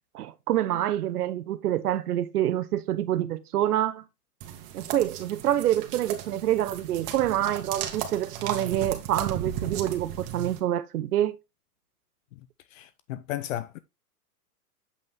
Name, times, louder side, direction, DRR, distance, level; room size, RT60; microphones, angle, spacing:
voice 1, 0.1-4.0 4.7-11.4, right 12 dB, 75° right, 1.1 m, -27 dB
sound 1, 4.4-10.6, right 10 dB, 45° right, 2.0 m, -35 dB
voice 2, 12.7-13.8, left 13 dB, 55° left, 0.8 m, -34 dB
8.3 x 5.3 x 3.6 m
hypercardioid pair, 130°, 46 cm